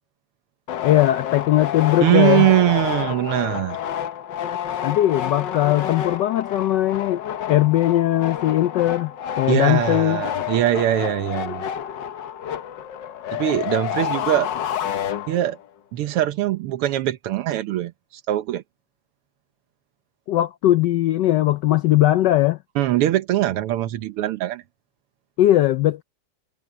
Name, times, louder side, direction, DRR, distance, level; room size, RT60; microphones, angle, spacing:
sound 1, 0.7-15.7, left 9 dB, 60° left, 1.5 m, -29 dB
voice 1, 0.8-2.5 4.8-7.2 7.5-10.2 20.3-22.6 25.4-26.0, left 14 dB, 80° left, 0.9 m, -19 dB
voice 2, 2.0-3.8 9.5-11.7 13.3-14.5 15.3-15.6 15.9-18.6 22.8-24.6, right 14 dB, 85° right, 1.8 m, -21 dB
omnidirectional pair, 2.4 m